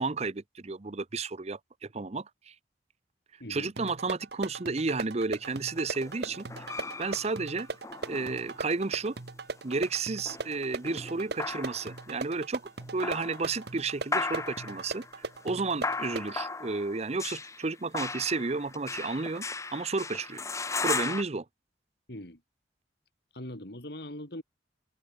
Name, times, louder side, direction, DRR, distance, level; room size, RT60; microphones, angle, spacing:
voice 1, 0.0-2.5 3.5-6.5 7.0-7.7 8.1-9.1 9.6-12.6 12.9-19.5 19.7-20.4 20.8-21.4, right 3 dB, 35° right, 0.7 m, -32 dB
sound 1, 3.8-16.4, right 3 dB, 60° right, 1.2 m, -39 dB
sound 2, 5.4-9.0 9.6-12.2 12.8-13.7 14.1-21.2, left 4 dB, 15° left, 0.8 m, -37 dB
voice 2, 22.1-22.4 23.3-24.4, left 1 dB, 60° left, 4.7 m, -41 dB
open air
head